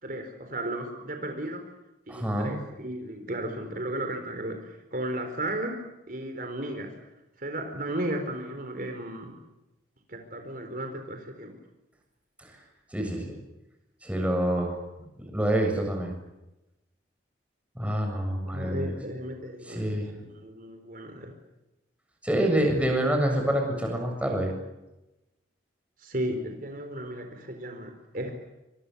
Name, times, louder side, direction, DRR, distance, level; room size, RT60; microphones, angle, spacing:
voice 1, 0.0-1.6 2.1-5.8 6.1-6.9 7.4-9.4 10.1-11.6 18.5-19.8 20.2-21.3 22.3-22.7 26.0-28.4, right 1 dB, 45° right, 5 dB, 4.4 m, -34 dB
voice 2, 2.1-2.5 12.9-13.3 14.0-14.8 15.3-16.1 17.8-18.9 19.7-20.1 22.2-24.5, right 1 dB, 5° right, 2 dB, 7.3 m, -26 dB
28.5 x 26.5 x 7.1 m, 0.98 s
head